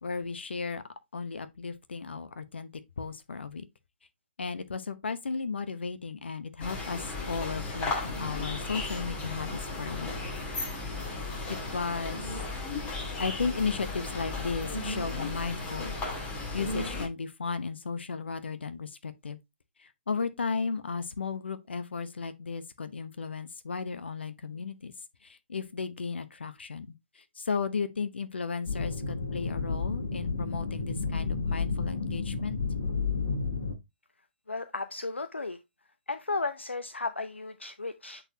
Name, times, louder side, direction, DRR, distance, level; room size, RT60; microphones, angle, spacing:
voice 1, 0.0-0.8 1.1-3.7 4.4-10.1 11.5-12.2 13.2-16.0 16.5-19.4 19.8-24.9 25.2-32.6, left 5 dB, 70° left, 0.9 m, -35 dB
sound 1, 6.6-17.1, left 2 dB, 20° left, 1.9 m, -35 dB
sound 2, 28.7-33.7, left 4 dB, 50° left, 2.4 m, -31 dB
voice 2, 34.5-35.6 36.1-38.2, left 3 dB, 85° left, 0.6 m, -34 dB
8.0 x 4.2 x 2.8 m
figure-of-eight pair, 130°, 6 cm